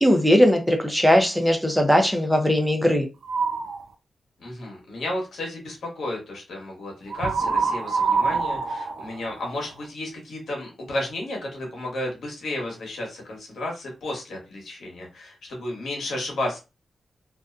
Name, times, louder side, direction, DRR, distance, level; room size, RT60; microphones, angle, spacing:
voice 1, 0.0-3.1, equal, ahead, 0.6 m, -19 dB
sound 1, 3.2-3.8 7.1-9.9, right 4 dB, 70° right, 0.4 m, -25 dB
voice 2, 4.4-16.6, left 1 dB, 85° left, 1.1 m, -32 dB
2.5 x 2.2 x 2.4 m
cardioid pair, 85°, 0 cm